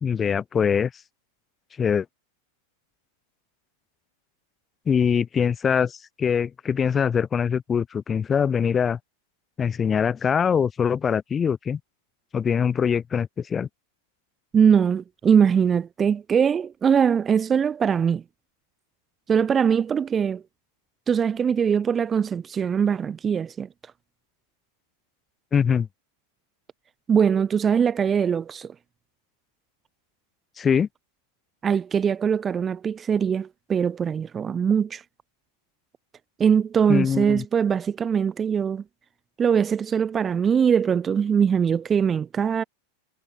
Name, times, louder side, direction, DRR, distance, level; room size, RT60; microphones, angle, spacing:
voice 1, 0.0-0.9 1.8-2.0 4.9-9.0 9.6-11.8 12.3-13.7 25.5-25.9 30.6-30.9 36.9-37.4, left 7 dB, 20° left, 0.8 m, -23 dB
voice 2, 14.5-18.2 19.3-20.4 21.1-23.7 27.1-28.7 31.6-35.0 36.4-38.8 39.4-42.6, right 7 dB, 20° right, 0.6 m, -22 dB
figure-of-eight pair, 90°, 0 cm